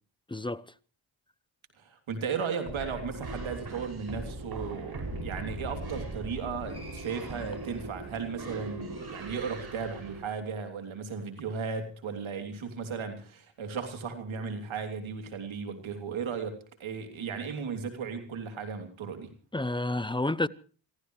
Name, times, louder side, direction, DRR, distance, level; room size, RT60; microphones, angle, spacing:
voice 1, 0.3-0.6 19.5-20.5, left 2 dB, 10° left, 0.7 m, -29 dB
voice 2, 1.8-19.3, right 5 dB, 75° right, 3.2 m, -36 dB
sound 1, 2.6-10.2, right 2 dB, 50° right, 6.2 m, -39 dB
28.0 x 15.5 x 3.2 m
supercardioid pair, 50°, 47 cm